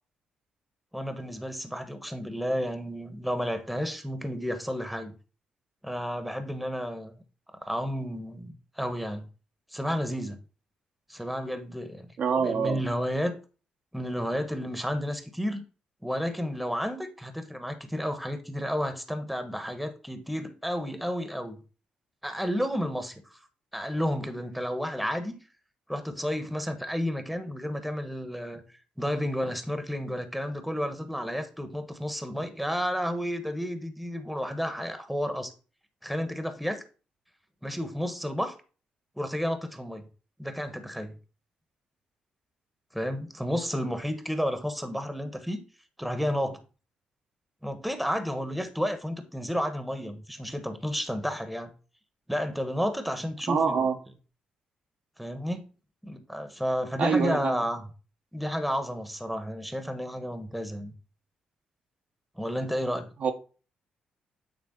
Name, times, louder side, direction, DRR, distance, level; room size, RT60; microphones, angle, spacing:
voice 1, 0.9-5.1 5.8-7.1 7.6-9.3 9.7-10.4 11.1-12.1 12.4-13.3 13.9-15.6 16.0-21.6 22.2-23.2 23.7-25.4 25.9-28.6 29.0-35.5 36.0-36.8 37.6-38.5 39.2-40.0 40.4-41.2 42.9-45.6 46.0-46.6 47.6-51.7 52.3-53.8 55.2-55.6 56.0-57.8 58.3-60.9 62.4-63.1, equal, ahead, 1.2 m, -31 dB
voice 2, 12.2-12.8 53.5-53.9 57.0-57.6 63.2-63.3, right 5 dB, 65° right, 1.0 m, -25 dB
8.7 x 3.4 x 3.8 m
supercardioid pair, 60°, 3 cm